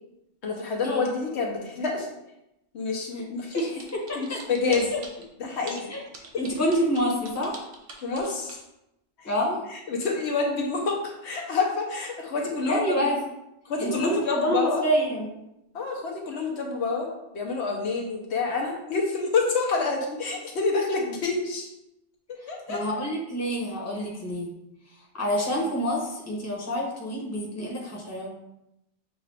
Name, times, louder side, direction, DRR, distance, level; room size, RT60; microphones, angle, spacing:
voice 1, 0.4-2.1 2.7-3.7 4.1-4.9 5.4-5.9 8.0-8.6 9.2-9.3 9.7-13.1 13.6-14.8 15.7-17.1 17.3-21.7 22.5-22.8, left 4 dB, 70° left, 0 dB, 1.0 m, -28 dB
voice 2, 3.5-4.4 4.9-5.0 5.9-6.0 6.4-7.7 9.2-9.6 12.7-13.2 13.8-15.3 22.7-24.5 25.1-28.3, equal, 15° left, -3 dB, 0.9 m, -27 dB
sound 1, 3.5-5.2 5.7-8.6, right 3 dB, 60° right, 0.9 m, -43 dB
6.5 x 2.3 x 3.3 m, 0.87 s
omnidirectional pair, 1.2 m